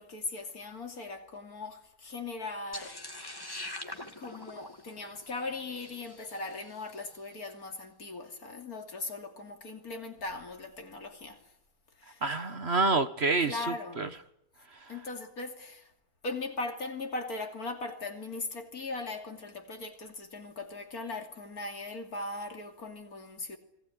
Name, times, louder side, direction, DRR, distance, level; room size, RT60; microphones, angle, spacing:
voice 1, 0.0-3.0 4.2-11.4 12.0-12.2 13.5-14.1 14.9-15.9 16.2-23.6, left 3 dB, 70° left, 3.3 m, -39 dB
sound 1, 2.7-7.0, left 1 dB, 15° left, 2.2 m, -44 dB
voice 2, 12.2-14.1 14.7-14.9, right 3 dB, 45° right, 1.5 m, -28 dB
29.0 x 20.5 x 9.9 m
omnidirectional pair, 1.6 m